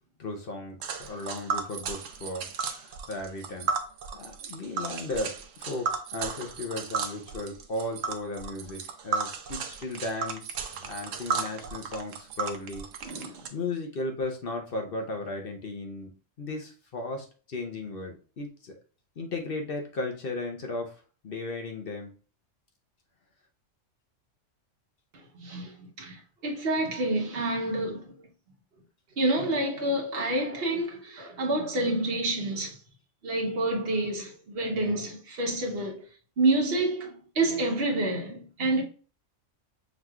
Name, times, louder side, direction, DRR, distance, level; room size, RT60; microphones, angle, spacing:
voice 1, 0.2-3.7 4.1-12.9 13.5-16.1 16.4-18.7 19.2-22.1, left 2 dB, 50° left, 0.9 m, -35 dB
Tick, 0.8-13.5, right 5 dB, 85° right, 1.0 m, -34 dB
voice 2, 13.0-13.5 25.3-28.1 29.2-32.8 33.2-36.0 36.4-38.8, right 2 dB, 50° right, 1.2 m, -28 dB
5.9 x 3.1 x 2.3 m
omnidirectional pair, 1.3 m